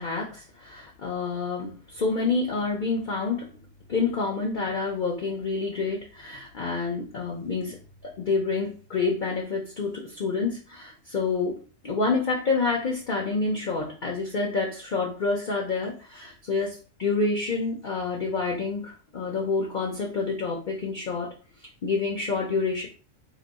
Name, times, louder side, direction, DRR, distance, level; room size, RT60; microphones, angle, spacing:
voice 1, 0.0-3.5 3.9-7.8 8.0-11.6 11.8-21.3 21.8-22.9, left 4 dB, 45° left, -1 dB, 0.7 m, -28 dB
3.0 x 2.7 x 4.0 m, 0.37 s
omnidirectional pair, 1.4 m